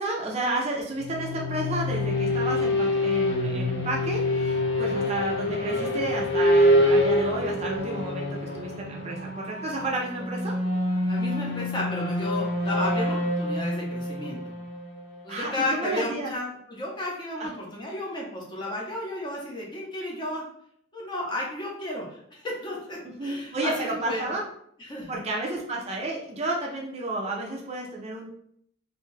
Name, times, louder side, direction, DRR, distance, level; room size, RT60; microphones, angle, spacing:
voice 1, 0.0-8.3 8.5-10.5 15.3-16.3 17.4-17.5 23.0-24.4 25.1-28.3, right 2 dB, 30° right, -2 dB, 0.4 m, -31 dB
sound 1, 1.0-15.6, left 1 dB, 60° left, 0.6 m, -26 dB
voice 2, 11.1-14.4 15.2-20.4 20.9-24.3 24.8-25.2, left 1 dB, 25° left, -3 dB, 0.6 m, -33 dB
2.6 x 2.2 x 3.1 m, 0.69 s
head